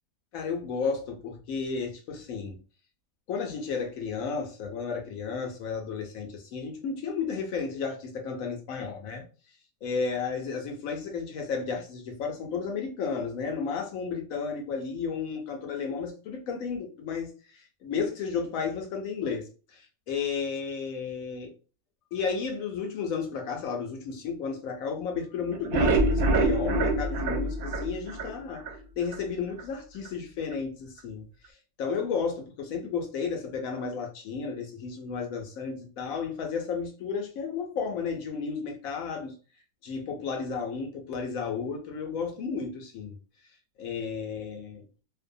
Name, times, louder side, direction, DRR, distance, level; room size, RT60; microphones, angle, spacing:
voice 1, 0.3-2.6 3.3-9.2 9.8-21.5 22.1-28.6 29.0-39.3 39.8-43.1 43.8-45.0, left 5 dB, 70° left, 0.9 m, -33 dB
sound 1, 25.5-28.8 29.1-29.2 29.6-29.7 30.1-30.2, right 2 dB, 70° right, 1.0 m, -25 dB
2.6 x 2.2 x 2.5 m
omnidirectional pair, 1.6 m